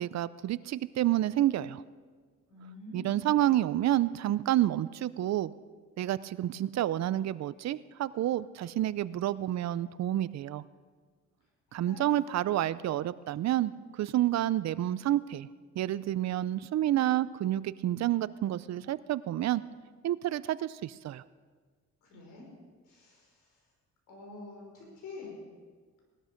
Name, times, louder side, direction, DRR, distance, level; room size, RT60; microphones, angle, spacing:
voice 1, 0.0-1.8 2.9-5.5 6.0-10.6 11.7-13.7 14.0-15.5 15.8-19.6 20.0-21.2, right 13 dB, 60° right, 17 dB, 0.6 m, -29 dB
voice 2, 2.5-3.4 11.7-12.7 22.0-22.5 22.9-23.6 24.1-25.4, left 3 dB, 90° left, -1 dB, 5.6 m, -47 dB
18.5 x 12.5 x 5.2 m, 1.5 s
cardioid pair, 90°, 30 cm